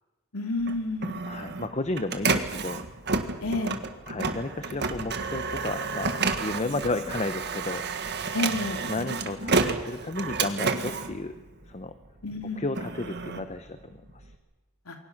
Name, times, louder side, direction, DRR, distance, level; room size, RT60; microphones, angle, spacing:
voice 1, 0.3-1.2 3.4-3.7 8.3-8.8 12.2-12.7 14.9-15.0, left 2 dB, 75° left, 4 dB, 2.7 m, -30 dB
Printer, 0.6-12.0 12.5-14.3, right 4 dB, 50° right, 1.7 m, -30 dB
voice 2, 1.3-2.8 4.1-7.8 8.9-11.3 11.7-11.9 12.6-14.3, left 2 dB, 30° left, 10 dB, 0.8 m, -33 dB
28.0 x 23.0 x 6.0 m, 1.2 s
head